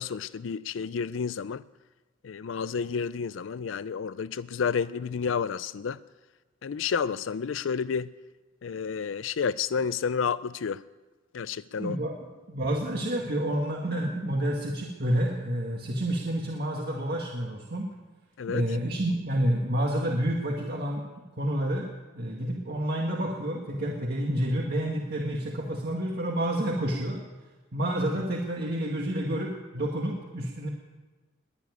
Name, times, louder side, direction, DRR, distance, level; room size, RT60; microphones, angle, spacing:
voice 1, 0.0-1.6 2.2-6.0 6.6-8.1 8.6-10.8 11.3-12.0 18.4-18.7, left 6 dB, 80° left, 17 dB, 0.4 m, -30 dB
voice 2, 11.8-17.9 18.5-21.0 21.4-21.9 22.1-27.2 27.7-30.7, right 1 dB, 55° right, -1 dB, 1.8 m, -29 dB
21.0 x 7.2 x 9.5 m, 1.2 s
head